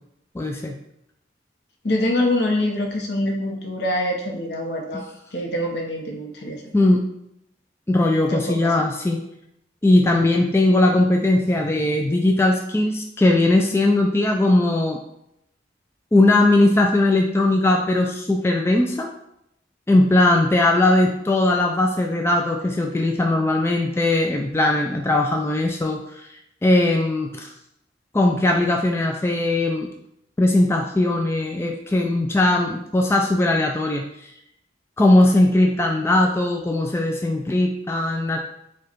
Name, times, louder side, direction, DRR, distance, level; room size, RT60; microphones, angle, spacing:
voice 1, 0.3-0.7 6.7-7.0 7.9-9.2 9.8-15.0 16.1-19.1 19.9-26.3 26.6-27.5 28.1-29.9 30.4-34.0 35.0-38.4, left 2 dB, 15° left, 1 dB, 0.3 m, -19 dB
voice 2, 1.8-5.0 5.3-6.6 8.3-8.7, left 1 dB, 70° left, 1 dB, 0.8 m, -24 dB
4.9 x 2.3 x 4.4 m, 0.80 s
head